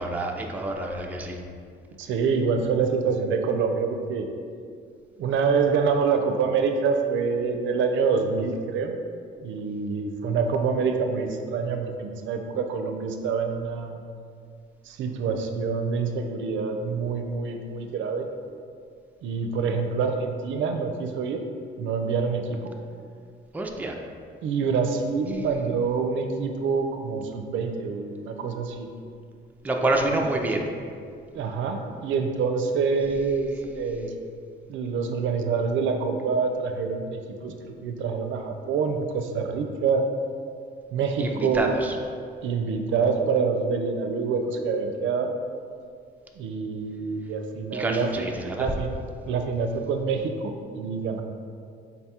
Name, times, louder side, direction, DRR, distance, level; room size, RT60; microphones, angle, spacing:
voice 1, 0.0-1.4 23.5-23.9 29.6-30.7 41.2-42.0 47.7-48.7, right 2 dB, 10° right, 1 dB, 0.3 m, -27 dB
voice 2, 2.0-4.3 5.2-8.9 9.4-14.0 14.9-18.3 19.2-21.4 21.8-22.7 24.4-28.9 31.3-34.1 34.7-40.0 40.9-41.7 42.4-45.3 46.4-48.3 48.6-48.9 49.3-51.2, right 5 dB, 75° right, 5 dB, 0.4 m, -26 dB
3.9 x 2.3 x 4.2 m, 2.3 s
cardioid pair, 90°, 20 cm